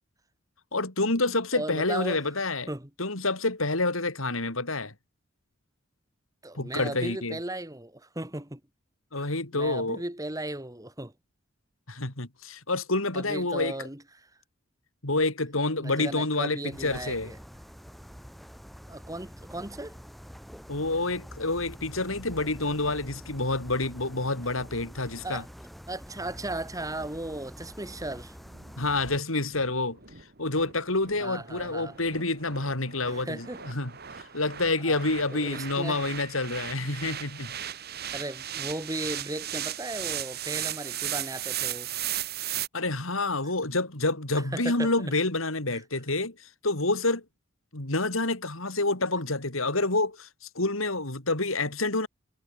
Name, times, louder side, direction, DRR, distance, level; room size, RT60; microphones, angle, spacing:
voice 1, 0.7-2.7 3.0-4.9 6.5-7.4 9.1-10.0 11.9-13.7 15.0-17.3 20.7-25.4 28.8-30.0 30.4-33.9 34.2-37.5 42.7-47.2 47.7-50.3 50.5-52.1, left 2 dB, 85° left, 4.5 m, -28 dB
voice 2, 1.5-2.2 2.7-2.9 6.4-8.6 9.2-11.1 13.1-14.3 15.8-17.4 18.9-19.9 25.2-25.5 25.9-28.4 31.2-32.0 33.1-33.6 34.8-35.0 35.3-36.0 38.1-41.9 44.5-44.9 45.7-45.8, right 1 dB, 15° right, 2.5 m, -36 dB
sound 1, 16.7-29.2, equal, ahead, 6.7 m, -46 dB
sound 2, 27.6-42.7, right 11 dB, 50° right, 2.5 m, -37 dB
head